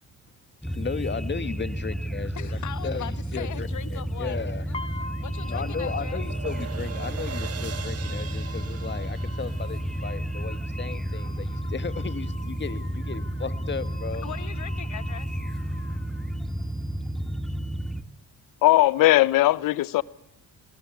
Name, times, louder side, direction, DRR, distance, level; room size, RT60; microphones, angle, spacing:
voice 1, 0.6-4.6 5.5-14.3, left 5 dB, 35° left, 1.8 m, -35 dB
sound 1, 0.6-18.0, right 1 dB, ahead, 1.4 m, -31 dB
voice 2, 2.3-4.4 4.7-4.8 5.2-6.2 14.1-15.4, left 10 dB, 60° left, 1.7 m, -39 dB
sound 2, 4.7-16.7, left 2 dB, 15° left, 1.5 m, -46 dB
sound 3, 4.9-11.2, right 7 dB, 45° right, 1.8 m, -42 dB
voice 3, 18.6-20.0, left 16 dB, 80° left, 0.9 m, -19 dB
21.5 x 19.5 x 8.3 m
cardioid pair, 80°, 33 cm